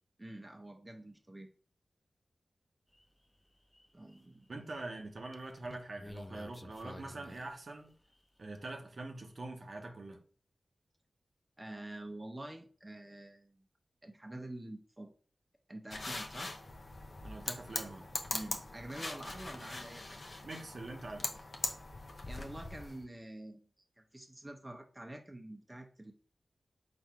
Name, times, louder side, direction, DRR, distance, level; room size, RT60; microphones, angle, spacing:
voice 1, 0.2-1.5 3.9-4.7 11.6-13.6 14.0-15.1 15.7-16.5 18.3-20.2 22.3-23.7 24.0-26.1, right 1 dB, 25° right, 0.7 m, -47 dB
sound 1, 2.9-3.1 3.5-4.2 5.0-8.2 8.7-8.8, left 1 dB, 15° left, 0.4 m, -51 dB
voice 2, 4.5-7.9 8.4-10.2 17.2-18.1 20.4-21.3, right 2 dB, 65° right, 0.9 m, -44 dB
sound 2, 15.9-23.0, left 2 dB, 60° left, 0.8 m, -41 dB
4.2 x 2.6 x 4.5 m
cardioid pair, 45°, 0 cm